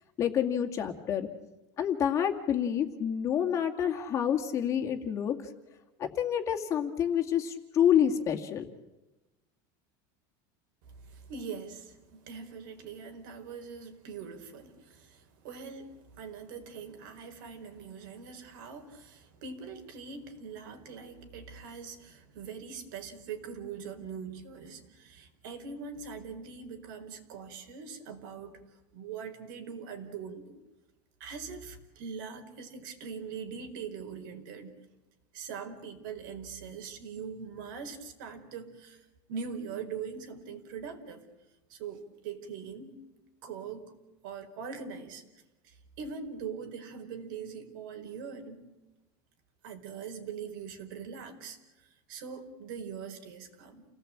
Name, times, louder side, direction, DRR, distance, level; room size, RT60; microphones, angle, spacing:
voice 1, 0.2-1.3 1.8-5.4 6.0-8.7, left 9 dB, 30° left, 3 dB, 2.2 m, -28 dB
voice 2, 10.9-28.6 28.9-30.6 31.2-34.7 35.3-39.0 39.3-41.2 41.7-43.0 43.4-43.9 44.2-45.2 45.6-48.7 49.6-51.6 52.1-53.9, right 6 dB, 75° right, 6 dB, 4.5 m, -42 dB
29.5 x 18.0 x 8.8 m, 1.1 s
cardioid pair, 165°, 11 cm